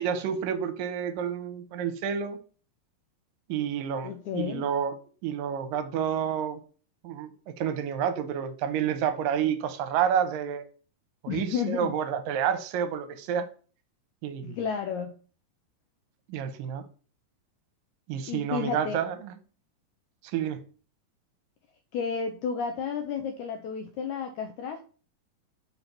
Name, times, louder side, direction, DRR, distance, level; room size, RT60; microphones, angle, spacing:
voice 1, 0.0-2.4 3.5-5.0 5.2-6.6 7.0-10.7 11.2-13.5 14.2-14.6 16.3-16.9 18.1-19.3 20.3-20.6, right 8 dB, 85° right, 2.4 m, -29 dB
voice 2, 4.0-4.7 11.3-11.9 14.4-15.1 18.3-19.0 21.9-24.8, left 6 dB, 85° left, 1.7 m, -32 dB
5.5 x 4.0 x 5.9 m
omnidirectional pair, 4.0 m